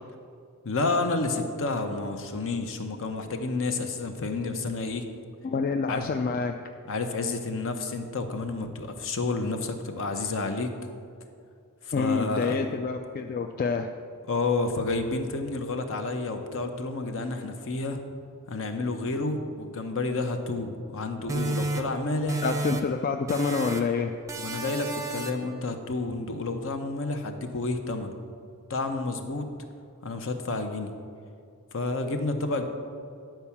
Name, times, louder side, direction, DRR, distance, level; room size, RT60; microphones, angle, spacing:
voice 1, 0.6-5.1 5.9-6.1 6.9-10.7 11.9-12.7 14.3-18.0 18.5-22.4 24.4-28.1 28.7-29.4 30.0-30.9 31.7-32.7, left 3 dB, 60° left, 6 dB, 0.9 m, -30 dB
voice 2, 5.4-6.6 11.9-13.9 22.4-24.1, left 4 dB, 40° left, 5 dB, 0.3 m, -27 dB
sound 1, 21.3-23.0 23.3-24.0 24.3-25.6, right 2 dB, 15° right, 0.6 m, -32 dB
10.0 x 4.6 x 7.1 m, 2.4 s
head